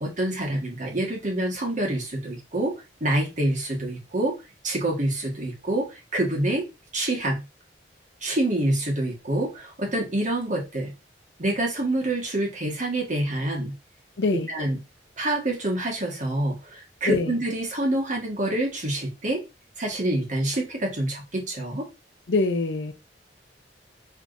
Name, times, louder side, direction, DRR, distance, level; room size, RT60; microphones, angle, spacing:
voice 1, 0.0-2.7 3.0-4.3 4.6-6.7 6.9-7.4 8.2-10.9 11.4-13.7 14.5-14.8 15.2-19.4 19.8-21.9, right 1 dB, 45° right, 1.6 m, -26 dB
voice 2, 14.2-14.5 17.0-17.3 22.3-22.9, left 3 dB, 90° left, 0.6 m, -24 dB
4.7 x 3.3 x 2.6 m
head